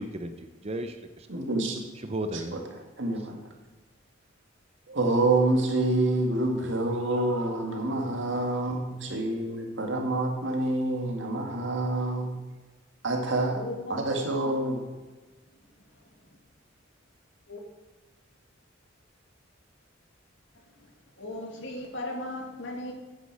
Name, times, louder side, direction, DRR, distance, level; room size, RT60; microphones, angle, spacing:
voice 1, 0.0-1.3 1.9-2.6 3.0-3.3, right 1 dB, 30° right, 8 dB, 0.6 m, -35 dB
voice 2, 1.3-1.8 3.0-3.3 4.9-12.4 13.0-13.6 13.9-14.8, right 2 dB, 70° right, 2 dB, 2.0 m, -27 dB
voice 3, 13.5-14.0 17.5-17.6 21.2-22.9, left 1 dB, 70° left, 2 dB, 2.1 m, -36 dB
9.7 x 9.6 x 4.8 m, 1.2 s
head